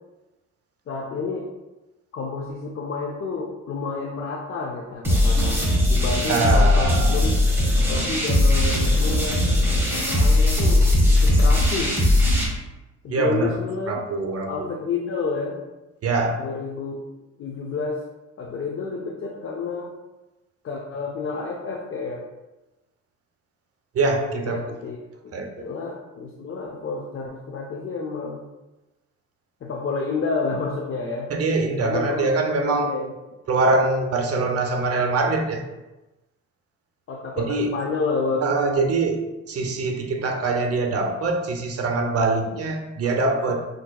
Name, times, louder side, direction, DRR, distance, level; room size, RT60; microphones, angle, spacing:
voice 1, 0.9-1.5 2.1-7.3 7.8-9.4 9.9-11.9 13.0-14.0 14.5-15.6 16.4-17.0 17.4-18.0 18.4-19.9 20.6-22.2 24.5-25.0 25.2-28.4 29.6-31.3 31.8-33.1 37.1-38.5, left 4 dB, 45° left, 0 dB, 0.5 m, -30 dB
sound 1, 5.0-12.4, left 1 dB, 10° right, 1.4 m, -19 dB
voice 2, 6.3-7.2 13.1-13.6 13.9-14.7 16.0-16.4 23.9-24.6 25.3-25.5 31.3-32.9 33.5-35.6 37.4-37.7 38.4-39.2 39.5-43.7, right 3 dB, 50° right, 4 dB, 0.6 m, -23 dB
5.5 x 2.7 x 2.2 m, 1.1 s
cardioid pair, 90°, 30 cm